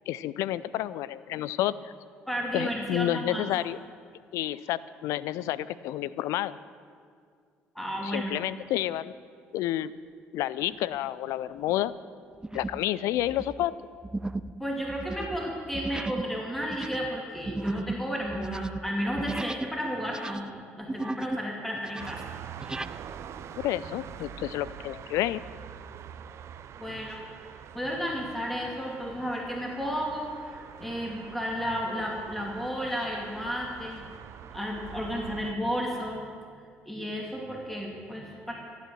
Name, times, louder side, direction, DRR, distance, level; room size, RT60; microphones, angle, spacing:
voice 1, 0.1-1.9 2.5-3.8 4.3-6.6 8.0-9.1 9.5-9.9 10.3-11.9 12.5-13.8 23.6-25.4, left 13 dB, 75° left, 18 dB, 0.4 m, -30 dB
voice 2, 2.3-3.5 7.7-8.3 14.6-20.4 20.8-22.3 26.8-27.2 27.7-34.1 34.5-36.3 36.9-38.5, equal, 5° left, -1 dB, 2.5 m, -33 dB
sound 1, 10.7-11.1 11.6-11.8 12.4-12.9 13.2-19.7 20.0-21.5 21.7-22.9, right 2 dB, 15° right, 0.5 m, -36 dB
sound 2, 22.0-35.5, right 8 dB, 60° right, 0.6 m, -45 dB
14.5 x 8.2 x 7.7 m, 2.1 s
supercardioid pair, 60°, 5 cm